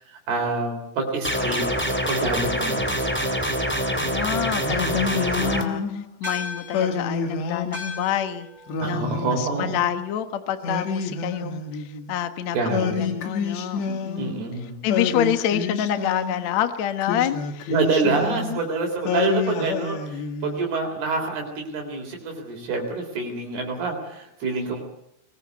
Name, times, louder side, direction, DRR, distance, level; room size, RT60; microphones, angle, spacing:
voice 1, 0.3-3.2 8.8-9.8 12.5-13.0 14.2-14.7 17.7-24.8, right 3 dB, 65° right, 2 dB, 5.5 m, -27 dB
sound 1, 1.2-5.6, equal, 5° left, 1.9 m, -25 dB
voice 2, 3.9-8.5 8.8-14.4 14.6-17.7 18.0-18.6, left 10 dB, 65° left, 9 dB, 1.8 m, -28 dB
Singing, 4.6-6.1 6.7-8.1 8.7-10.0 10.6-12.1 12.7-14.5 14.9-16.5 17.0-18.7 19.0-20.7, left 5 dB, 85° left, 4.4 m, -28 dB
sound 2, 6.2-10.9, left 4 dB, 10° right, 5.2 m, -39 dB
23.0 x 20.5 x 8.3 m, 0.79 s
omnidirectional pair, 4.9 m